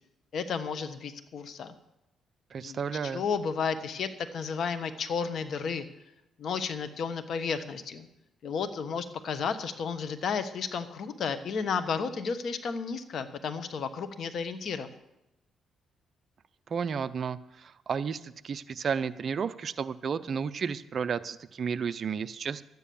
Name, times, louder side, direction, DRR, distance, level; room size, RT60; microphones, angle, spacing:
voice 1, 0.3-1.7 2.6-2.8 3.1-5.8 6.4-8.1 8.4-14.9, left 6 dB, 60° left, 10 dB, 1.2 m, -32 dB
voice 2, 2.5-3.2 16.7-22.6, right 6 dB, 45° right, 14 dB, 0.6 m, -32 dB
12.5 x 9.4 x 7.0 m, 0.90 s
cardioid pair, 115°, 0 cm